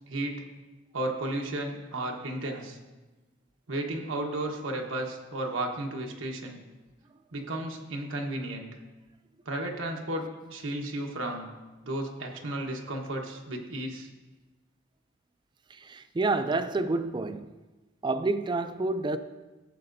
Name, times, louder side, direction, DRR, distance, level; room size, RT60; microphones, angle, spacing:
voice 1, 0.1-0.4 0.9-2.8 3.7-6.6 7.3-8.7 9.5-10.2 10.5-11.5 11.8-14.1, right 1 dB, 80° right, 1.2 m, -33 dB
voice 2, 15.8-17.5 18.0-19.2, right 3 dB, 25° right, 0.3 m, -28 dB
14.5 x 7.4 x 2.6 m
head